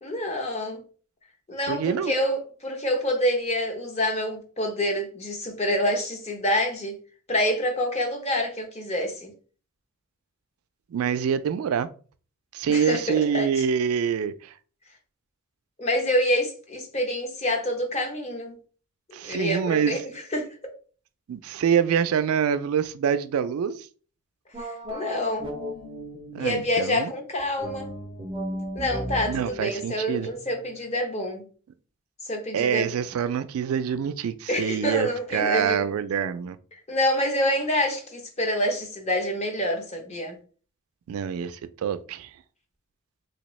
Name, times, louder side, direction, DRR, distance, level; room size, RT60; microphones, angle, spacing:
voice 1, 0.0-0.8 1.5-7.0 7.3-9.3 12.7-13.5 15.8-18.6 19.2-20.0 20.3-20.7 24.6-25.5 26.4-27.9 28.7-31.4 32.2-32.8 34.5-35.9 36.9-40.4, left 1 dB, 30° left, 0.8 m, -27 dB
voice 2, 1.7-2.1 10.9-11.9 12.5-14.5 19.1-20.0 21.3-23.9 26.3-27.1 29.2-30.3 32.5-36.6 41.1-42.3, right 7 dB, 85° right, 0.3 m, -26 dB
sound 1, 24.5-26.8 27.6-30.9, left 1 dB, 20° right, 0.5 m, -36 dB
3.5 x 2.8 x 3.1 m
head